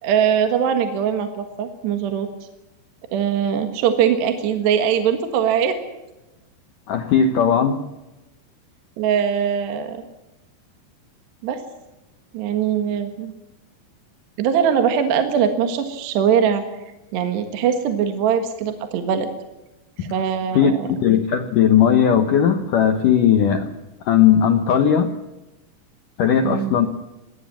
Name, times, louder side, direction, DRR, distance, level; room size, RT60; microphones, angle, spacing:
voice 1, 0.0-2.3 3.1-5.8 9.0-10.0 11.4-11.6 12.3-13.3 14.4-16.6 17.1-19.3 20.0-20.9 26.4-26.8, right 8 dB, 70° right, 7 dB, 3.5 m, -21 dB
voice 2, 6.9-7.8 20.0-20.1 20.6-23.7 24.0-25.1 26.2-26.9, left 8 dB, 70° left, 7 dB, 2.0 m, -17 dB
21.0 x 18.0 x 7.3 m, 1.0 s
omnidirectional pair, 5.3 m